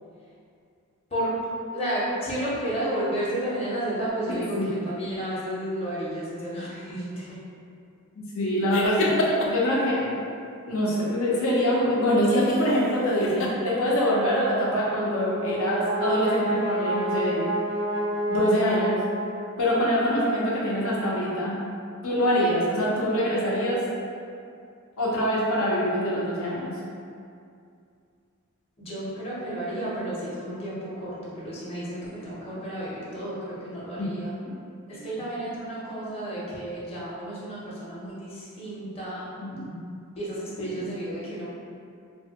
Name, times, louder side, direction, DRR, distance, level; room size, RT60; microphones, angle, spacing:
voice 1, 1.7-7.4 28.8-34.3 34.9-39.3 40.2-41.5, right 1 dB, 30° left, -8 dB, 0.8 m, -32 dB
voice 2, 4.3-4.7 8.1-10.2 10.7-17.5 18.3-19.0 19.6-21.6 22.0-23.8 25.0-26.7 34.0-34.1 34.9-35.1 39.4-39.8 40.6-40.9, equal, 85° left, -6 dB, 0.8 m, -24 dB
sound 1, 8.7-9.7 12.4-12.8 13.2-13.5, left 2 dB, 65° left, 0.4 m, -26 dB
Brass instrument, 14.6-19.7, right 1 dB, 30° right, 0.4 m, -29 dB
3.2 x 2.2 x 2.8 m, 2.4 s
head